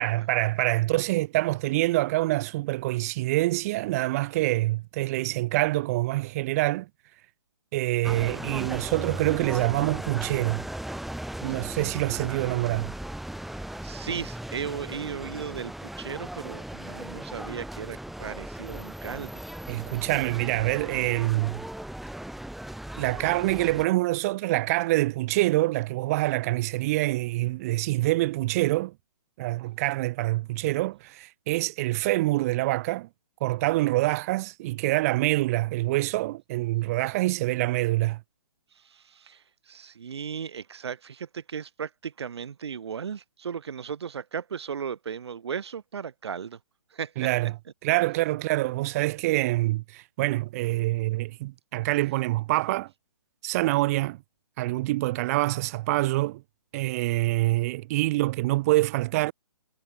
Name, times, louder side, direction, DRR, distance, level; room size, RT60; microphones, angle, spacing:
voice 1, 0.0-6.9 7.7-10.6 11.4-12.9 19.7-21.6 23.0-28.9 29.4-33.1 33.4-38.2 47.2-47.5 47.8-52.9 53.4-54.2 54.6-56.4 56.7-59.3, right 18 dB, 35° right, 1.9 m, -26 dB
sound 1, 8.0-23.9, right 1 dB, ahead, 5.9 m, -37 dB
voice 2, 12.1-13.0 13.5-19.4 38.7-46.6 46.9-47.3, right 7 dB, 65° right, 4.0 m, -36 dB
hypercardioid pair, 150°, 15 cm